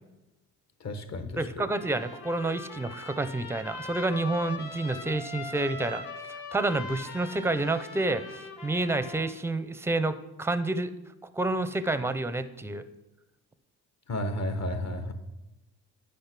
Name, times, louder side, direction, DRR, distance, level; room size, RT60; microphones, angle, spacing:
voice 1, 0.8-1.6 14.1-15.1, left 1 dB, 45° left, 9 dB, 1.1 m, -32 dB
voice 2, 1.4-6.0 6.3-10.9 11.3-12.8, right 2 dB, 5° right, 13 dB, 0.5 m, -29 dB
Trumpet, 1.7-9.3, left 3 dB, 70° left, 1.7 m, -41 dB
9.0 x 5.3 x 5.9 m, 0.98 s
cardioid pair, 85°, 39 cm